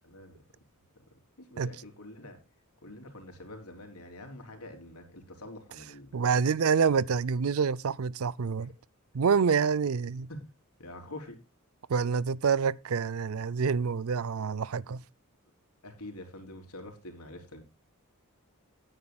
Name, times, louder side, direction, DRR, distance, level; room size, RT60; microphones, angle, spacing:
voice 1, 0.0-0.4 1.4-2.4 2.8-6.1 8.6-8.7 10.3-10.4 10.8-11.4 15.8-17.6, left 1 dB, 85° left, 3.7 m, -46 dB
voice 2, 6.1-8.7 9.1-10.3 11.9-15.0, right 6 dB, 65° right, 0.5 m, -27 dB
18.5 x 9.6 x 2.3 m
head